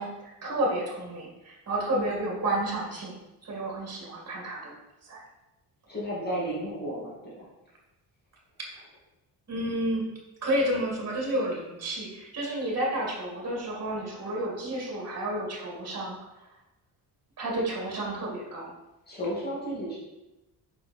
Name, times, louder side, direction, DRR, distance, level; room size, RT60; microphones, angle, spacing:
voice 1, 0.0-3.2 3.4-4.7 5.0-5.2 8.6-8.7 9.5-10.1 10.4-16.2 17.4-18.7, right 1 dB, 35° right, -2 dB, 2.0 m, -31 dB
voice 2, 5.9-7.5 19.1-20.0, equal, 25° left, -6 dB, 2.3 m, -33 dB
5.7 x 4.4 x 4.3 m, 0.99 s
cardioid pair, 120°, 41 cm